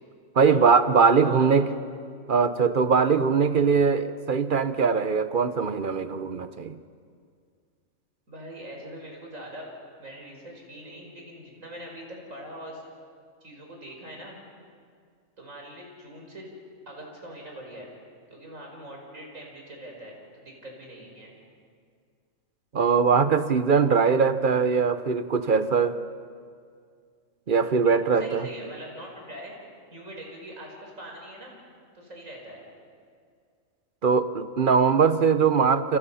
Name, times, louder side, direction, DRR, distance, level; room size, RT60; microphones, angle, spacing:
voice 1, 0.3-1.7 2.3-6.8 22.7-26.0 27.5-28.4 34.0-36.0, right 5 dB, 40° right, 11 dB, 1.0 m, -21 dB
voice 2, 1.1-1.5 8.3-9.7 10.0-12.8 13.4-14.4 15.4-16.5 16.9-17.9 18.3-21.3 28.2-29.5 29.9-31.6 31.9-32.6, right 1 dB, 70° right, 0 dB, 5.5 m, -42 dB
29.5 x 28.0 x 5.7 m, 2.1 s
omnidirectional pair, 1.4 m